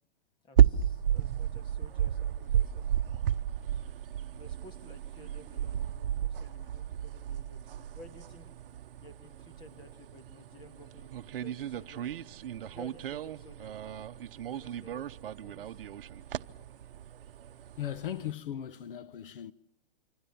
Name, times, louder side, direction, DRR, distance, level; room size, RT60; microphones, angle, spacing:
voice 1, 0.4-3.1 4.1-8.5 9.0-12.1 12.6-14.0 14.4-15.8, left 1 dB, 15° left, 1.8 m, -54 dB
sound 1, 0.6-18.3, right 10 dB, 65° right, 0.9 m, -32 dB
voice 2, 17.8-19.5, left 11 dB, 60° left, 0.8 m, -37 dB
26.0 x 25.5 x 7.1 m
hypercardioid pair, 160°, 30 cm